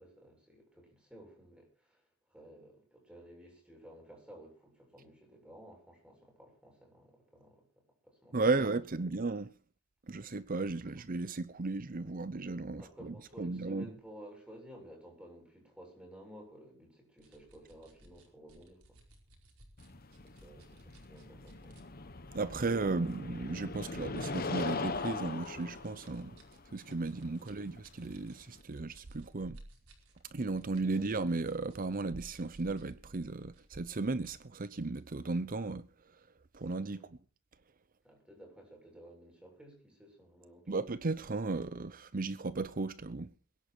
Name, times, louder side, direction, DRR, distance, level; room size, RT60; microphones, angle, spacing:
voice 1, 0.0-7.6 8.0-8.6 9.0-9.1 10.9-11.0 12.8-19.0 20.2-21.8 27.4-27.6 30.9-31.1 36.9-37.1 38.0-40.8, right 1 dB, 5° right, 7.3 m, -54 dB
voice 2, 8.3-9.5 10.1-13.9 22.3-26.4 26.7-29.6 30.3-35.9 36.5-37.2 40.7-43.3, right 3 dB, 40° right, 0.7 m, -35 dB
sound 1, 17.2-21.8 22.4-22.5 23.1-23.6 24.2-33.0 33.3-35.4, right 2 dB, 90° right, 4.9 m, -62 dB
sound 2, 19.8-28.6, left 3 dB, 45° left, 1.3 m, -41 dB
22.5 x 11.0 x 4.5 m
head